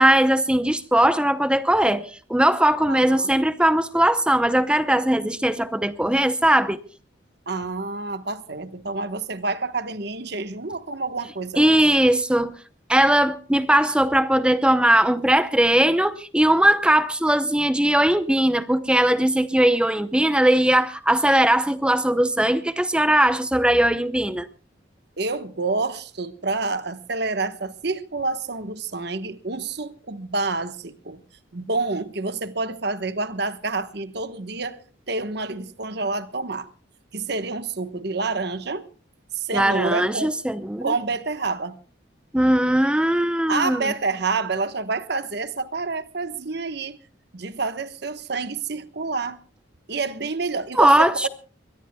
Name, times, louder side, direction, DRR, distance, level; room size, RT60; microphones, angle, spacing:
voice 1, 0.0-6.8 11.6-12.5 12.9-24.5 39.5-40.9 42.3-43.9 50.8-51.3, right 1 dB, 5° right, 0.7 m, -19 dB
voice 2, 2.9-3.3 7.5-11.7 25.2-31.2 31.5-34.8 35.1-36.7 37.1-38.8 39.3-40.3 40.8-41.8 43.5-47.0 47.3-49.4 49.9-51.3, right 3 dB, 55° right, 1.2 m, -28 dB
23.0 x 21.5 x 2.3 m
head